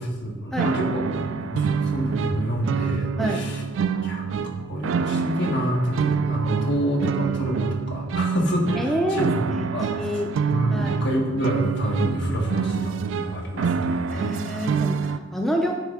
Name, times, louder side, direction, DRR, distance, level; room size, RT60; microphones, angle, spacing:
voice 1, 0.0-3.6 4.0-4.4 4.7-9.4 9.7-10.0 10.5-14.7, equal, 65° left, 1 dB, 1.2 m, -27 dB
sound 1, 0.6-15.2, right 6 dB, 75° right, 0.3 m, -26 dB
voice 2, 3.2-3.5 8.8-10.3 10.7-11.0 14.1-15.8, equal, ahead, 1 dB, 0.5 m, -27 dB
9.0 x 3.2 x 4.8 m, 1.2 s
head